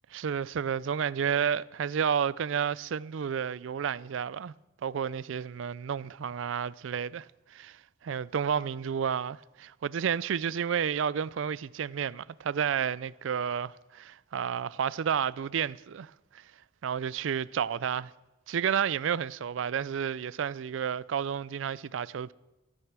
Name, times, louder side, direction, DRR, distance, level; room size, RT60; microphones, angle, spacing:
voice 1, 0.1-4.5 4.8-16.4 16.8-18.1 18.5-22.3, right 7 dB, 65° right, 0.4 m, -31 dB
13.5 x 10.5 x 6.1 m
head